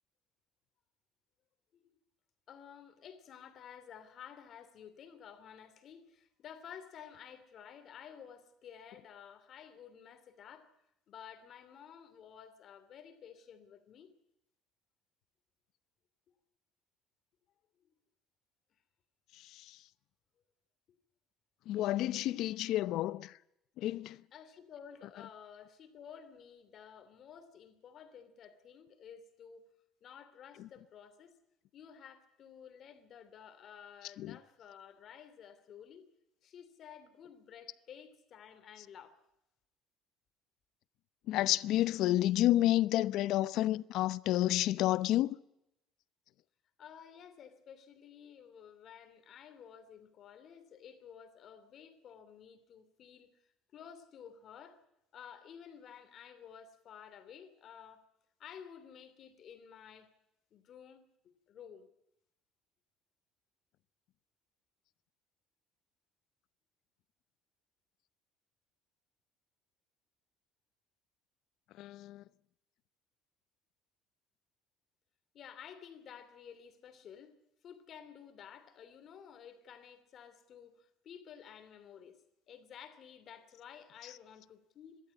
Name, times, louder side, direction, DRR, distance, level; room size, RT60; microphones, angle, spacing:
voice 1, 2.5-10.7 11.1-14.1 17.8-17.9 24.3-29.6 30.0-31.3 31.7-36.1 36.4-39.2 46.8-54.8 55.1-58.1 58.4-60.1 60.5-61.9 75.3-77.3 77.6-85.0, left 8 dB, 40° left, 2.8 m, -53 dB
voice 2, 21.7-23.3 23.8-24.2 34.2-34.4 41.3-45.4 71.8-72.2, left 14 dB, 60° left, 0.7 m, -30 dB
23.5 x 13.0 x 9.6 m
cardioid pair, 150°, 0 cm